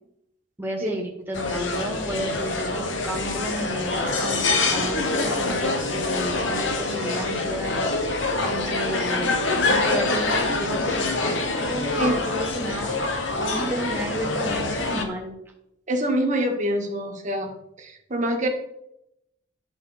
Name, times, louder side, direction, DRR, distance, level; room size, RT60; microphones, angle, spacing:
voice 1, 0.6-9.4 9.7-13.0 13.4-15.3, right 1 dB, 10° right, -1 dB, 1.8 m, -32 dB
sound 1, 1.3-15.0, left 3 dB, 75° left, 1.1 m, -25 dB
voice 2, 15.9-17.5 17.8-18.5, equal, 40° right, 1 dB, 1.7 m, -25 dB
11.0 x 5.7 x 4.1 m, 0.80 s
head